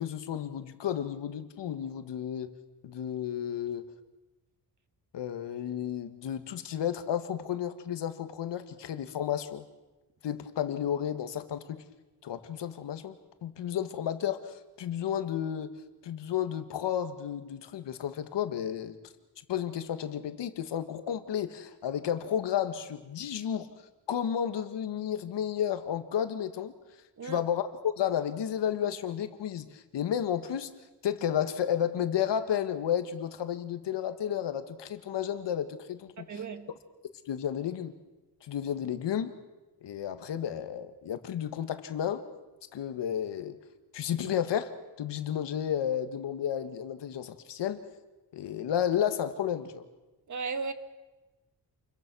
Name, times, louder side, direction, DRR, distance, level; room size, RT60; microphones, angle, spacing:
voice 1, 0.0-2.6 2.8-3.8 5.1-9.6 10.2-11.8 12.2-13.1 13.4-15.8 16.0-19.0 19.5-23.7 24.1-26.7 27.2-30.7 31.0-36.4 37.3-37.9 38.4-39.3 39.8-42.2 42.7-43.6 43.9-44.7 45.0-47.8 48.3-49.9, left 9 dB, 90° left, 1.7 m, -32 dB
voice 2, 36.2-36.7 50.3-50.7, right 4 dB, 45° right, 1.5 m, -35 dB
28.5 x 22.5 x 6.2 m
wide cardioid pair, 155°, 41 cm